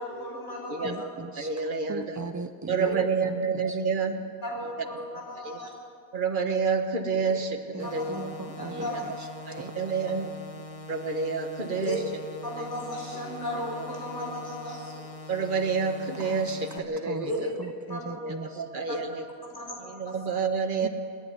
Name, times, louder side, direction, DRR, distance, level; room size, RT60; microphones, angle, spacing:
voice 1, 0.0-1.0 2.7-2.9 4.4-5.7 7.8-8.0 8.6-9.0 11.6-12.0 12.4-15.1 17.2-17.5 17.9-18.0 18.9-19.0 19.5-19.8 20.0-20.1, left 1 dB, 75° left, -1 dB, 5.1 m, -35 dB
voice 2, 0.8-3.0 3.2-3.8 7.7-8.9 9.2-9.6 16.2-17.3 17.6-18.6 20.8-20.9, right 3 dB, 30° right, 7 dB, 0.3 m, -39 dB
voice 3, 1.4-2.2 2.7-4.2 5.4-5.6 6.1-8.2 8.7-9.0 9.5-10.3 10.9-12.0 12.6-12.7 13.7-13.8 15.3-17.5 18.2-19.3 19.8-20.9, right 5 dB, 45° right, 5 dB, 1.4 m, -29 dB
sound 1, 7.8-16.8, left 2 dB, 30° left, 1.3 m, -43 dB
27.0 x 10.0 x 9.7 m, 2.3 s
omnidirectional pair, 1.2 m